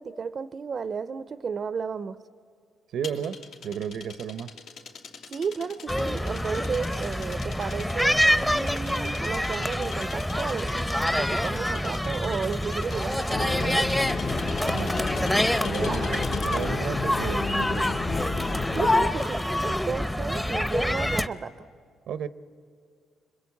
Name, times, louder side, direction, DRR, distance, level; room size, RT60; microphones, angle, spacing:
voice 1, 0.0-2.2 5.3-13.9 15.8-16.0 18.7-21.7, right 5 dB, 45° right, 15 dB, 0.5 m, -33 dB
voice 2, 2.9-4.5 14.7-15.0 15.6-18.0 22.1-22.3, right 8 dB, 75° right, 15 dB, 0.7 m, -33 dB
sound 1, 3.0-16.8, left 5 dB, 85° left, 2.9 m, -43 dB
sound 2, 5.9-21.3, left 1 dB, 5° left, 0.7 m, -26 dB
sound 3, 13.3-19.1, left 5 dB, 45° left, 0.8 m, -32 dB
25.5 x 22.0 x 8.4 m, 2.1 s
cardioid pair, 90°, 0 cm